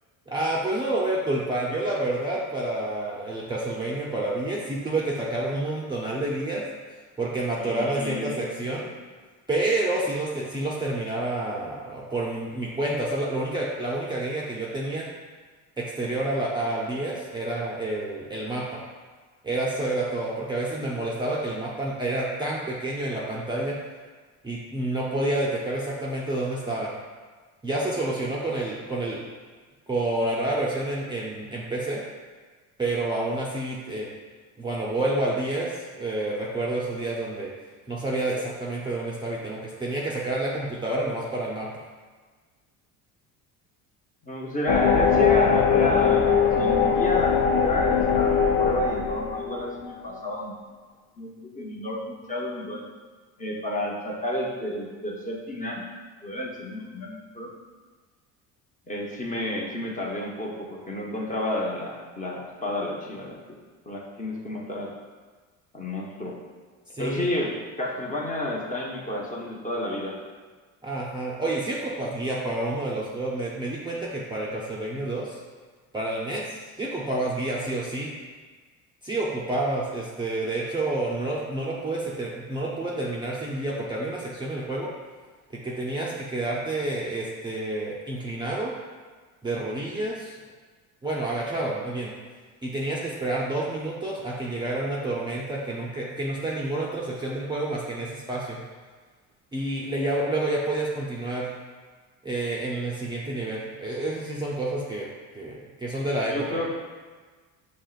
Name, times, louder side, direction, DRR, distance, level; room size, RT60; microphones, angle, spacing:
voice 1, 0.3-6.6 7.2-8.9 9.5-15.1 15.8-18.8 19.4-23.8 24.4-26.9 27.6-29.2 29.9-32.0 32.8-34.1 34.6-37.5 37.9-41.7 66.9-67.3 70.8-75.4 75.9-78.1 79.0-84.9 85.6-88.7 89.4-90.4 91.0-92.1 92.6-98.6 99.5-101.5 102.2-105.1 105.3-106.6, right 2 dB, 10° right, -5 dB, 0.5 m, -29 dB
voice 2, 7.6-8.9 44.2-50.6 51.2-52.8 53.4-55.8 56.2-57.5 58.9-63.6 63.9-64.9 65.7-66.4 67.0-70.2 106.3-106.7, left 1 dB, 20° left, -2 dB, 0.8 m, -31 dB
sound 1, 44.7-50.0, left 6 dB, 90° left, 0.6 m, -21 dB
6.1 x 3.0 x 2.4 m, 1.4 s
cardioid pair, 105°, 38 cm